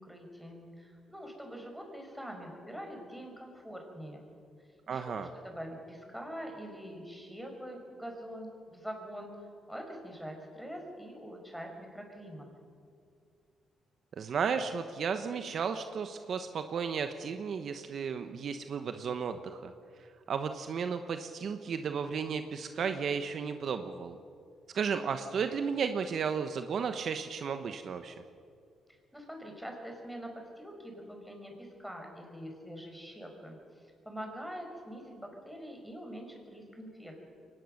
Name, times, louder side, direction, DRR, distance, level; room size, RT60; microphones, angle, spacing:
voice 1, 0.0-4.3 4.9-12.5 29.1-37.2, equal, ahead, 2 dB, 5.2 m, -44 dB
voice 2, 4.9-5.3 14.1-19.7 20.3-24.2 24.7-28.2, right 6 dB, 55° right, 8 dB, 1.0 m, -34 dB
23.0 x 19.0 x 6.6 m, 2.3 s
cardioid pair, 90°, 0 cm